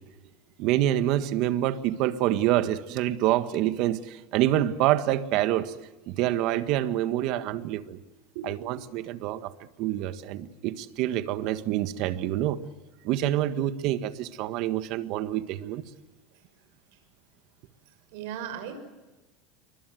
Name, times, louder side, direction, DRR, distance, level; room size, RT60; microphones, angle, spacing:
voice 1, 0.6-5.7 6.1-8.0 8.4-9.5 9.8-12.6 13.0-15.8, right 13 dB, 55° right, 1.6 m, -26 dB
voice 2, 8.3-8.8 9.9-10.2 16.3-16.4 16.9-17.0 18.1-18.8, right 7 dB, 70° right, 6.7 m, -39 dB
28.5 x 23.5 x 7.9 m
supercardioid pair, 150°, 0 cm